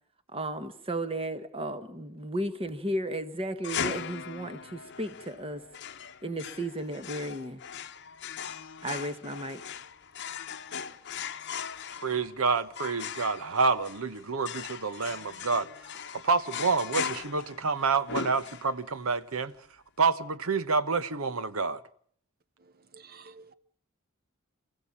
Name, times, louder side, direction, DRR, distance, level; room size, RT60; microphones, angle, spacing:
voice 1, 0.3-5.6 6.2-7.6 8.8-9.6, right 1 dB, 25° right, 1.5 m, -34 dB
sound 1, 3.6-19.0, left 7 dB, 55° left, 0.9 m, -39 dB
voice 2, 12.0-15.7 16.1-19.5 20.0-21.8, right 4 dB, 70° right, 1.1 m, -28 dB
voice 3, 22.9-23.5, right 4 dB, 45° right, 0.9 m, -50 dB
28.0 x 15.5 x 8.7 m
head